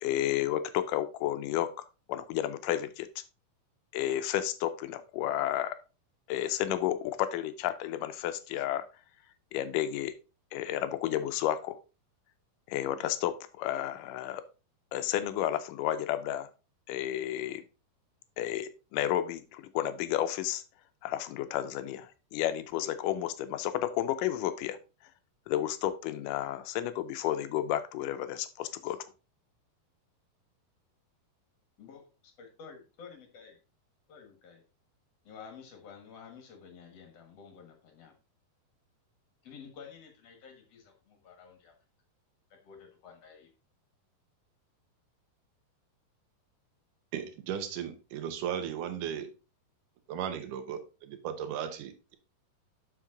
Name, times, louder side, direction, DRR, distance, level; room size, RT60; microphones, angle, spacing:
voice 1, 0.0-1.7 2.1-3.1 3.9-5.8 6.3-8.9 9.5-10.1 10.5-11.8 12.7-14.4 14.9-16.5 16.9-17.6 18.4-20.6 21.0-24.8 25.5-29.1, left 12 dB, 85° left, 1.9 m, -31 dB
voice 2, 32.4-33.6 34.1-34.6 35.2-38.2 39.4-41.8 42.5-43.5, left 6 dB, 55° left, 2.0 m, -51 dB
voice 3, 47.1-49.3 50.1-52.2, right 9 dB, 70° right, 2.2 m, -36 dB
7.3 x 5.8 x 3.7 m
omnidirectional pair, 4.3 m